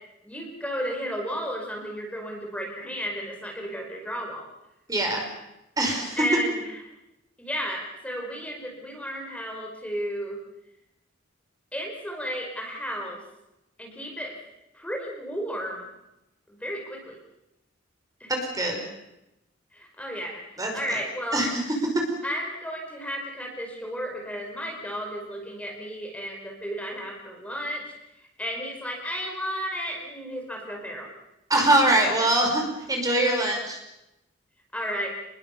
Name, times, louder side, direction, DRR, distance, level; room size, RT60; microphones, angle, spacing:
voice 1, 0.2-4.5 6.2-6.6 7.4-10.4 11.7-13.2 13.8-14.4 14.7-15.9 16.5-17.2 18.2-18.3 19.7-21.4 22.2-27.9 28.4-31.1 34.7-35.1, equal, 5° left, 0 dB, 5.2 m, -33 dB
voice 2, 4.9-5.3 5.8-6.3 18.3-18.8 20.6-21.0 21.3-22.1 31.5-33.8, right 1 dB, 20° right, 2 dB, 5.2 m, -23 dB
29.5 x 21.5 x 7.1 m, 0.91 s
head